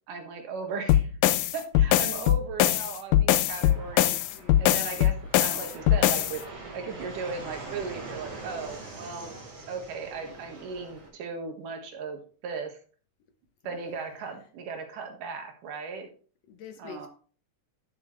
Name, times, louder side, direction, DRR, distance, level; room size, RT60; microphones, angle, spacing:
voice 1, 0.1-1.1 1.5-4.2 4.6-6.4 6.7-9.3 9.7-12.8 13.6-16.1 16.8-17.1, right 5 dB, 90° right, 4 dB, 3.2 m, -37 dB
sound 1, 0.9-6.4, left 13 dB, 85° left, 2.1 m, -22 dB
Fixed-wing aircraft airplane, 3.5-11.1, right 3 dB, 50° right, 4.0 m, -43 dB
voice 2, 4.3-4.9 13.6-14.4 16.5-17.1, left 7 dB, 65° left, 7 dB, 1.9 m, -47 dB
11.5 x 7.8 x 3.3 m, 0.40 s
omnidirectional pair, 3.7 m